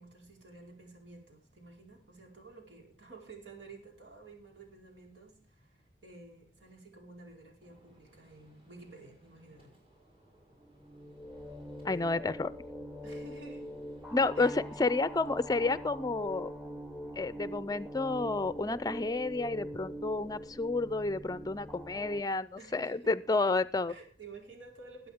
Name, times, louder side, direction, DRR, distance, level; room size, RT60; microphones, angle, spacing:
voice 1, 0.0-9.8 13.0-13.6 14.3-14.8 22.6-23.1 23.9-25.1, right 3 dB, 90° right, 1 dB, 4.8 m, -52 dB
Gunshot gunfire, 7.6-15.5, right 1 dB, 30° right, 4.8 m, -65 dB
sound 1, 10.6-22.2, equal, ahead, 0.8 m, -43 dB
voice 2, 11.8-12.5 14.1-16.5 17.2-23.9, left 3 dB, 20° left, 16 dB, 0.5 m, -30 dB
20.5 x 8.5 x 3.6 m, 0.40 s
head